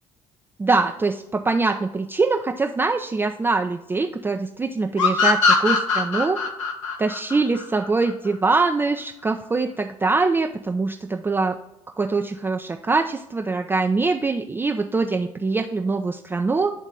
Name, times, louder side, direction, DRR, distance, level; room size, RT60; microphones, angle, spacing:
voice 1, 0.6-6.4 7.0-11.6 12.0-16.7, right 3 dB, 15° right, 4 dB, 0.4 m, -23 dB
sound 1, 5.0-8.3, left 4 dB, 75° left, 0.9 m, -21 dB
10.5 x 3.6 x 3.8 m, 0.88 s
figure-of-eight pair, 50°, 16 cm